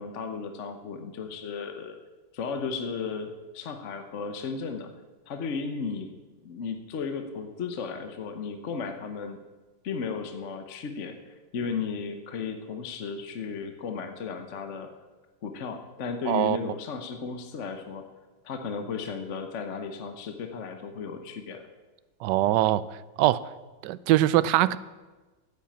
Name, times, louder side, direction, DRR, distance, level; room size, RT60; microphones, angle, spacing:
voice 1, 0.0-2.0 2.3-4.9 5.3-6.1 6.4-9.4 9.8-14.9 15.4-18.0 18.4-21.6, left 5 dB, 50° left, 7 dB, 1.0 m, -35 dB
voice 2, 16.3-16.6 22.2-22.8 23.2-23.4 23.8-24.8, right 14 dB, 75° right, 17 dB, 1.1 m, -22 dB
10.0 x 8.4 x 8.6 m, 1.2 s
omnidirectional pair, 2.1 m